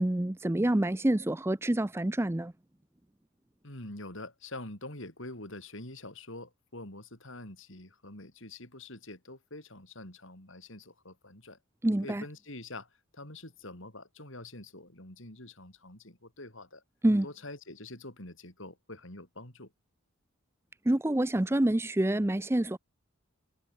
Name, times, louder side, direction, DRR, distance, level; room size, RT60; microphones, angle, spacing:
voice 1, 0.0-2.5 11.8-12.2 17.0-17.3 20.9-22.8, right 1 dB, 10° right, 0.5 m, -27 dB
voice 2, 3.6-11.6 12.0-16.8 17.2-19.7, left 2 dB, 60° left, 5.1 m, -45 dB
head